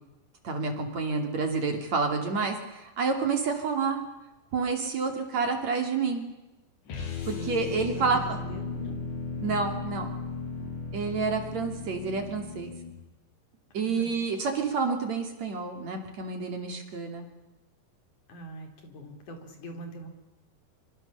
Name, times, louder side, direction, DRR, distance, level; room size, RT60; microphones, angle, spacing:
voice 1, 0.4-4.0 4.5-6.3 7.3-8.4 9.4-10.1 10.9-12.7 13.7-17.3, right 4 dB, 40° right, 4 dB, 3.4 m, -29 dB
sound 1, 6.9-13.0, left 4 dB, 65° left, 7.6 m, -36 dB
voice 2, 7.4-9.1 9.4-9.6 13.8-14.2 18.3-20.1, equal, 40° left, 4 dB, 4.8 m, -43 dB
25.5 x 25.5 x 7.0 m, 1.0 s
omnidirectional pair, 5.7 m